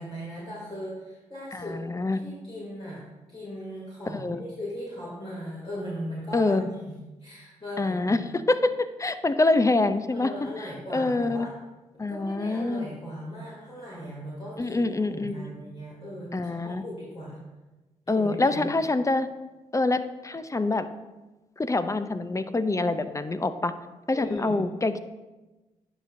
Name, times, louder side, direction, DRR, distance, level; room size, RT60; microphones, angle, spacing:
voice 1, 0.0-1.8 2.2-3.0 3.3-8.2 10.1-11.5 12.1-17.4 18.1-18.6 24.1-24.6, equal, 40° left, -7 dB, 2.5 m, -38 dB
voice 2, 1.5-2.2 4.1-4.4 6.3-6.6 7.8-10.3 10.9-11.5 12.0-12.9 14.6-15.5 16.3-16.8 18.1-19.3 19.7-20.9 21.6-23.7 24.1-25.0, left 2 dB, 25° left, 11 dB, 0.5 m, -25 dB
9.9 x 5.8 x 2.6 m, 1.1 s
supercardioid pair, 45°, 14 cm